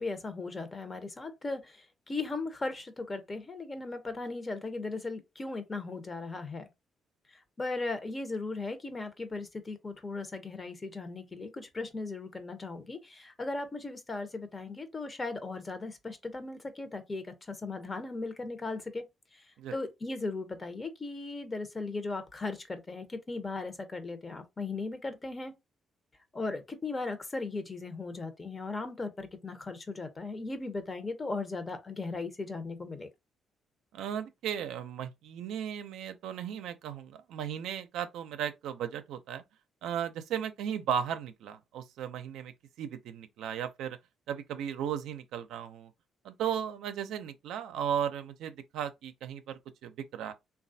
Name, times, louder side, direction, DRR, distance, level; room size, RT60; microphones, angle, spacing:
voice 1, 0.0-6.7 7.6-19.0 19.7-25.5 26.3-33.1, left 3 dB, 30° left, 0.7 m, -37 dB
voice 2, 33.9-39.4 39.8-42.5 42.8-44.0 44.3-45.9 46.2-50.3, right 9 dB, 85° right, 0.4 m, -36 dB
3.1 x 2.3 x 2.6 m
cardioid pair, 90°, 0 cm